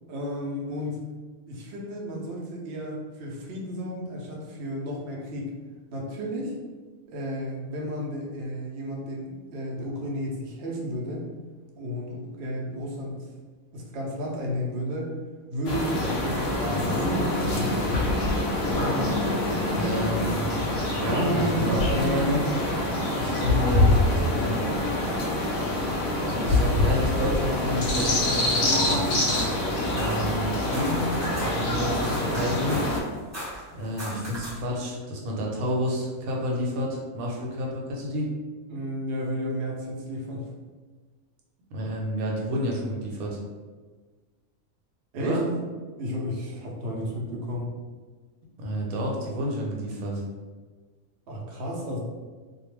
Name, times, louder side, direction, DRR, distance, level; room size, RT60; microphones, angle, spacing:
voice 1, 0.1-1.0 1.5-5.5 5.9-6.5 7.1-11.3 11.8-13.3 13.7-15.1 15.5-18.0 38.7-40.5 45.1-45.4 46.0-47.7 51.3-52.0, equal, 60° right, -2 dB, 0.7 m, -33 dB
sound 1, 15.6-33.0, left 1 dB, 70° left, 0.9 m, -25 dB
voice 2, 19.7-20.6 20.9-22.4 23.1-24.6 26.2-29.4 29.9-31.0 31.4-32.8 33.7-38.3 41.7-43.4 45.2-45.4 48.6-50.2, equal, 85° right, -2 dB, 1.1 m, -30 dB
sound 2, 28.5-34.7, equal, 25° right, 0.3 m, -38 dB
2.3 x 2.2 x 3.0 m, 1.4 s
omnidirectional pair, 1.5 m